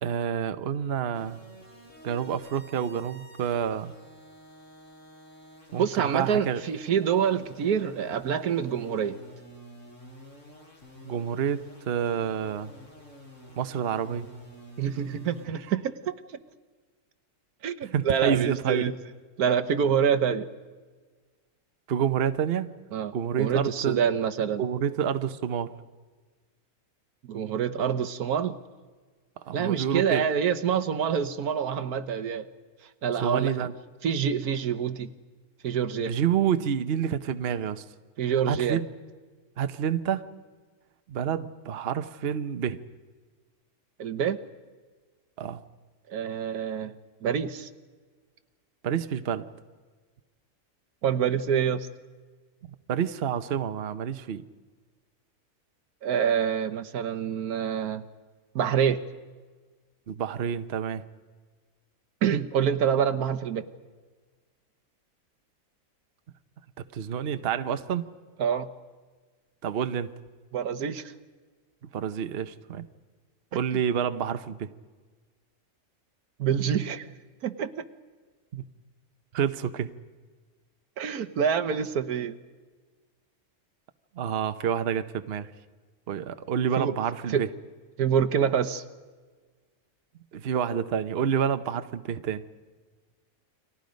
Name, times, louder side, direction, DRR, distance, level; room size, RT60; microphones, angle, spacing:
voice 1, 0.0-1.4 2.0-3.9 5.7-6.6 11.0-12.7 13.6-14.3 17.9-19.0 21.9-22.7 23.1-24.1 24.6-25.7 29.4-30.2 33.1-33.7 36.1-37.8 38.3-38.9 39.6-40.3 41.1-42.8 45.4-45.6 48.8-49.5 52.9-54.4 60.1-61.0 66.9-68.1 69.6-70.1 71.9-72.9 73.5-74.7 78.5-78.6 79.3-79.9 84.2-85.5 86.1-87.5 90.3-92.4, right 8 dB, 50° right, 10 dB, 0.9 m, -28 dB
sound 1, 1.1-15.5, left 1 dB, 50° left, 6.5 m, -49 dB
voice 2, 5.8-9.2 14.8-16.1 17.6-18.9 19.4-20.4 22.9-24.6 27.3-28.6 29.5-32.5 33.0-33.7 34.0-35.1 35.6-36.2 38.2-38.8 44.0-44.4 46.1-46.9 47.2-47.7 51.0-51.9 56.0-58.0 58.5-59.0 62.2-63.6 68.4-68.7 70.5-71.1 76.4-77.1 77.4-77.8 81.0-82.4 86.8-86.9 87.3-87.4 88.0-88.8, right 8 dB, 80° right, 11 dB, 1.5 m, -26 dB
30.0 x 24.0 x 5.2 m, 1.4 s
omnidirectional pair, 1.6 m